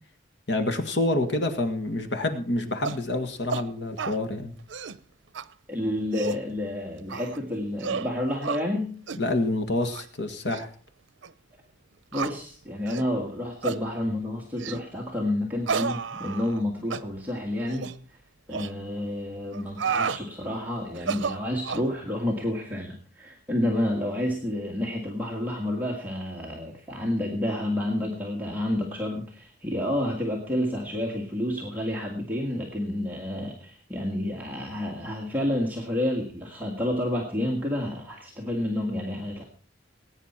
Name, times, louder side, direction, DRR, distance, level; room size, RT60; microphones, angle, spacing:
voice 1, 0.5-4.5 9.2-10.7, left 2 dB, 65° left, 7 dB, 1.8 m, -27 dB
sound 1, 2.8-3.0 3.5-3.7 4.0-4.2 4.6-5.0 5.3-5.5 5.9-6.4 7.1-7.4 7.8-8.1 8.4-8.6 9.1-9.2 9.8-10.1 10.5-10.6 11.2-11.3 12.1-12.3 12.9-13.1 13.6-13.8 14.6-14.8 15.7-16.6 16.9-17.0 17.7-18.0 18.5-18.7 19.5-20.2 20.9-21.9, right 5 dB, 85° right, 0.7 m, -31 dB
voice 2, 5.7-9.0 12.1-17.9 18.5-39.4, left 1 dB, 10° right, -2 dB, 1.7 m, -29 dB
20.0 x 9.4 x 4.4 m, 0.41 s
head